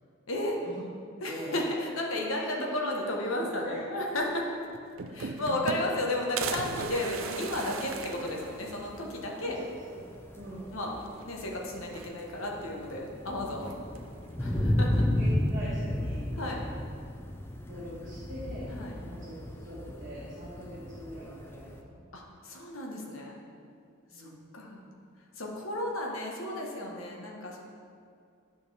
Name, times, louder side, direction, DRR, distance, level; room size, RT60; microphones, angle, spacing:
voice 1, 0.3-0.6 1.2-4.5 5.1-9.6 10.7-11.0 11.2-13.7 14.4-14.9 16.3-16.6 18.7-19.0 22.1-23.4 24.1-24.8 25.3-27.6, left 1 dB, 75° left, 0 dB, 1.2 m, -33 dB
voice 2, 1.2-1.6 2.5-2.6 3.3-3.8 5.2-5.3 5.7-5.8 9.4-10.1 10.3-10.6 14.4-14.7 15.2-16.3 17.7-22.0 24.1-24.4, equal, 35° right, -9 dB, 1.4 m, -43 dB
sound 1, 4.4-4.5 4.7-6.0 6.4-9.0 9.4-9.5 9.7-9.8 11.0-11.5 11.8-12.6 13.6-14.2, right 5 dB, 70° right, 0.5 m, -38 dB
sound 2, 6.7-21.8, left 1 dB, 10° left, 0.4 m, -34 dB
11.0 x 5.2 x 3.3 m, 2.3 s
head